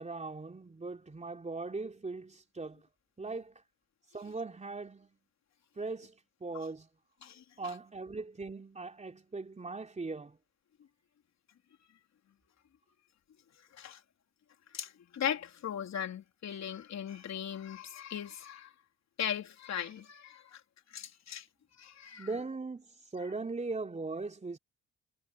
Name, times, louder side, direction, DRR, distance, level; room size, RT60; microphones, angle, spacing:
voice 1, 0.0-2.8 3.2-3.5 4.1-5.2 5.8-6.9 7.6-10.4 22.1-22.9 23.1-24.6, right 3 dB, 25° right, 3.6 m, -39 dB
voice 2, 7.2-7.7 13.7-14.0 14.7-18.7 19.2-20.6 20.9-21.5 21.8-22.3, left 9 dB, 60° left, 3.6 m, -38 dB
cardioid pair, 90°, 30 cm